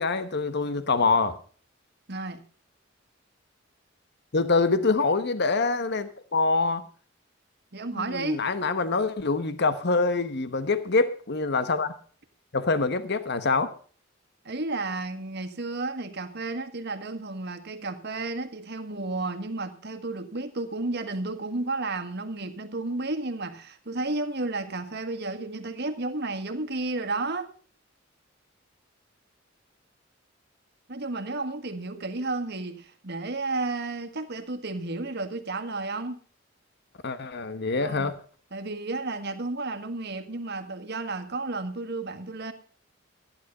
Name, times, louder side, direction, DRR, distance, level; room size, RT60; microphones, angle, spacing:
voice 1, 0.0-1.4 4.3-6.9 7.9-11.9 12.5-13.7 37.0-38.1, left 3 dB, 60° left, 1.1 m, -25 dB
voice 2, 2.1-2.4 7.7-8.4 14.4-27.5 30.9-36.2 37.8-38.1 38.5-42.5, right 2 dB, 60° right, 1.7 m, -32 dB
14.5 x 10.5 x 5.4 m
head